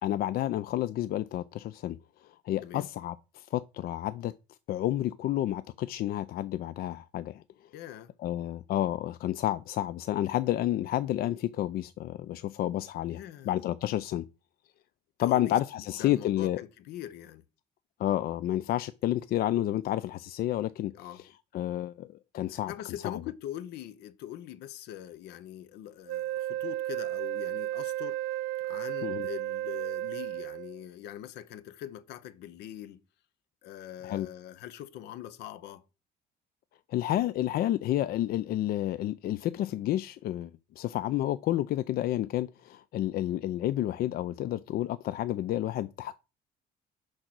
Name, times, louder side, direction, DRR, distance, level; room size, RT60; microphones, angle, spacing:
voice 1, 0.0-2.0 2.5-4.3 4.7-7.4 8.2-13.2 13.5-14.3 15.2-16.6 18.0-20.9 21.5-22.1 22.3-22.7 23.0-23.2 29.0-29.3 34.0-34.3 36.9-46.2, left 13 dB, 65° left, 0.4 m, -30 dB
voice 2, 7.7-8.1 13.1-13.5 15.2-17.4 20.9-21.2 22.5-28.2 28.6-33.0 33.6-35.8, left 11 dB, 80° left, 0.8 m, -43 dB
Wind instrument woodwind instrument, 26.1-30.8, right 14 dB, 75° right, 0.4 m, -33 dB
6.5 x 4.9 x 6.0 m
cardioid pair, 110°, 17 cm